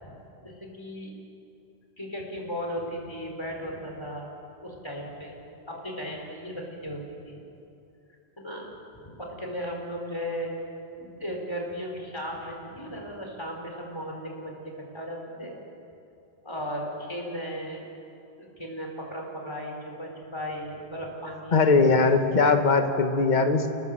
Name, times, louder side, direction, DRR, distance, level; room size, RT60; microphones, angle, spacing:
voice 1, 0.1-1.1 2.0-4.3 4.6-5.4 5.7-7.4 8.4-8.8 9.0-10.5 11.0-15.5 16.4-17.8 18.3-21.7, equal, 25° left, 0 dB, 4.4 m, -36 dB
voice 2, 21.5-23.7, left 4 dB, 45° left, 6 dB, 1.5 m, -20 dB
30.0 x 19.0 x 7.6 m, 2.7 s
omnidirectional pair, 1.1 m